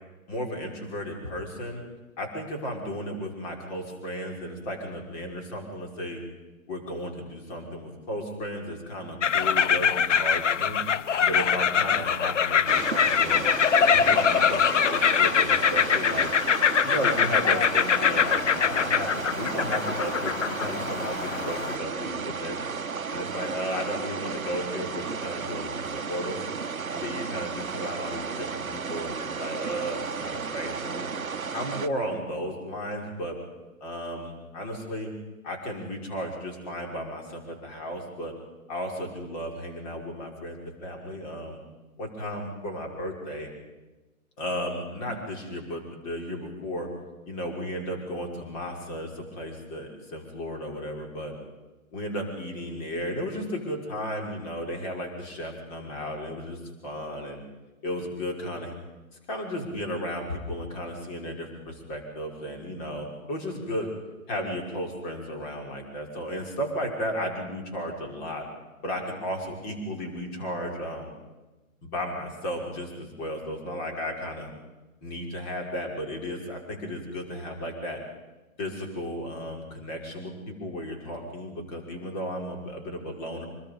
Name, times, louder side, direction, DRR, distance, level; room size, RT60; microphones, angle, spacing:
voice 1, 0.3-1.8 2.2-6.2 6.7-10.8 11.2-13.4 13.8-16.3 16.8-22.6 23.1-26.4 26.9-31.1 31.5-33.4 33.8-35.1 35.4-38.3 38.7-41.6 42.0-43.5 44.4-46.9 47.3-51.3 51.9-57.4 57.8-58.7 59.3-63.9 64.3-68.4 68.8-71.2 71.8-74.5 75.0-78.0 78.6-83.5, equal, 30° left, 1 dB, 5.6 m, -34 dB
sound 1, 9.2-21.8, left 7 dB, 60° left, 0.7 m, -23 dB
sound 2, 12.7-31.9, right 5 dB, 75° right, 1.0 m, -34 dB
26.0 x 23.0 x 5.4 m, 1.1 s
figure-of-eight pair, 130°, 42 cm